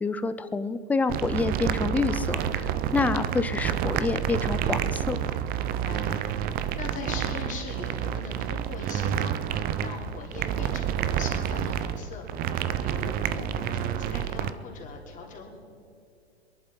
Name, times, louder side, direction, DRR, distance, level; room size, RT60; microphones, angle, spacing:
voice 1, 0.0-5.2, left 4 dB, 5° left, 12 dB, 0.4 m, -28 dB
sound 1, 1.1-14.5, right 9 dB, 30° right, 0.7 m, -29 dB
voice 2, 5.6-6.4 6.7-12.5 12.8-15.6, left 4 dB, 25° left, -1 dB, 3.4 m, -41 dB
22.5 x 11.5 x 4.5 m, 2.5 s
hypercardioid pair, 115°, 32 cm